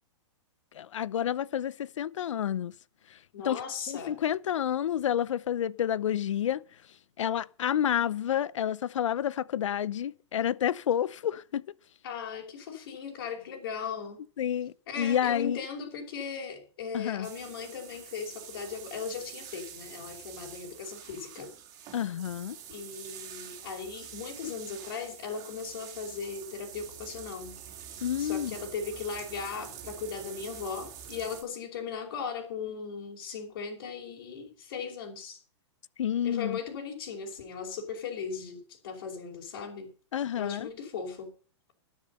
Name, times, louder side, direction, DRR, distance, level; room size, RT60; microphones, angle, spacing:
voice 1, 0.7-2.7 3.4-3.6 3.9-6.6 7.2-11.6 14.4-15.6 16.9-17.3 21.9-22.6 28.0-28.6 36.0-36.6 40.1-40.7, left 10 dB, 85° left, 0.8 m, -29 dB
voice 2, 3.3-4.2 12.0-14.2 14.9-21.5 22.7-27.6 28.2-35.4 36.2-39.9 40.3-41.3, left 6 dB, 50° left, 5.3 m, -38 dB
sound 1, 17.2-31.4, right 9 dB, 25° right, 3.2 m, -46 dB
12.0 x 11.5 x 5.5 m
hypercardioid pair, 170°, 15 cm